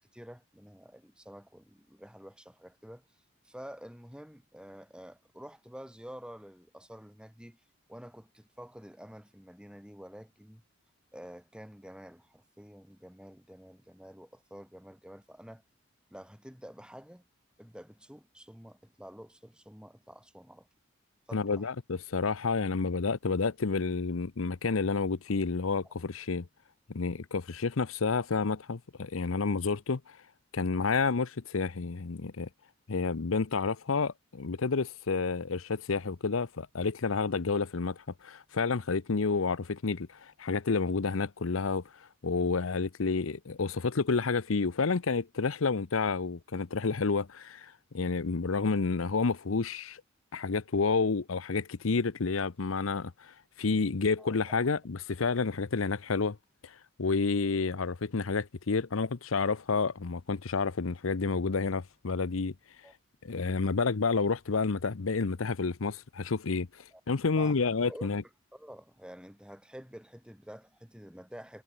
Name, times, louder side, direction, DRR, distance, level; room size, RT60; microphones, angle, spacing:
voice 1, 0.0-3.0 3.4-7.6 7.9-10.6 11.1-15.6 16.1-17.2 17.6-20.7 21.3-21.7 25.8-25.9 54.2-54.6 62.8-62.9 66.9-67.0 67.4-68.1 68.5-71.6, equal, 5° right, 4.6 m, -49 dB
voice 2, 21.3-26.5 26.9-30.2 30.5-32.5 32.9-50.0 50.3-56.4 56.6-62.5 63.2-68.2, left 4 dB, 85° left, 0.8 m, -30 dB
head